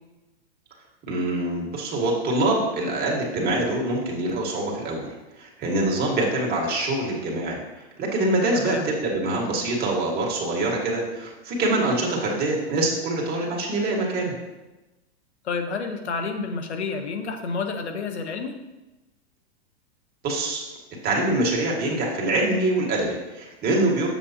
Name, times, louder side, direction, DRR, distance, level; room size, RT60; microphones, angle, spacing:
voice 1, 1.1-5.1 5.4-7.6 8.0-14.3 20.2-20.7 21.0-24.1, right 2 dB, 30° right, -2 dB, 1.9 m, -24 dB
voice 2, 8.5-8.9 15.4-18.6, left 4 dB, 85° left, 6 dB, 1.1 m, -29 dB
7.1 x 7.1 x 2.9 m, 1.1 s
hypercardioid pair, 120°, 32 cm